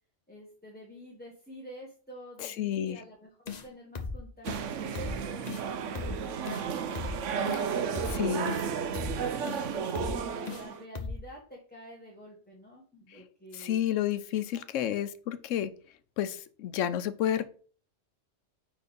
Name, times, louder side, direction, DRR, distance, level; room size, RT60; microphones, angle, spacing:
voice 1, 0.3-7.1 7.8-13.8 14.5-14.6 14.9-15.1, equal, 10° left, -3 dB, 1.3 m, -49 dB
voice 2, 2.4-3.0 7.5-7.6 8.1-8.5 13.1-13.2 13.5-15.7 16.2-17.4, left 11 dB, 85° left, 13 dB, 1.0 m, -31 dB
sound 1, 3.5-3.7 4.0-4.2 4.5-4.6 5.0-5.2 5.5-5.6 6.0-6.2 6.5-6.6 7.0-7.2 7.5-7.6 8.0-8.2 8.5-8.6 9.0-9.2 9.5-9.6 10.0-10.2 10.5-10.6 11.0-11.2, left 4 dB, 40° left, 0.7 m, -37 dB
sound 2, 4.4-10.8, right 6 dB, 80° right, 1.0 m, -33 dB
5.4 x 4.4 x 5.2 m, 0.43 s
omnidirectional pair, 1.3 m